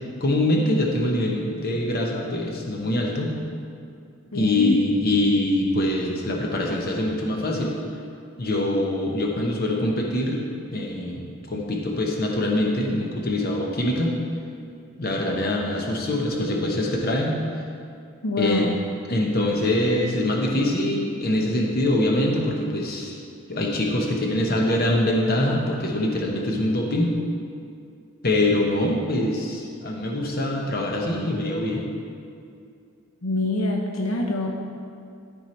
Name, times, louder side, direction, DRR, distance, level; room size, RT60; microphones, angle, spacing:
voice 1, 0.2-3.4 4.3-7.7 8.4-10.4 10.7-14.2 15.0-17.4 18.4-18.7 19.1-23.2 23.5-27.1 28.2-31.9, left 1 dB, 45° left, -1 dB, 1.0 m, -24 dB
voice 2, 4.3-4.8 18.2-18.8 33.2-34.6, left 2 dB, 75° left, 1 dB, 0.8 m, -25 dB
12.5 x 4.6 x 4.4 m, 2.4 s
head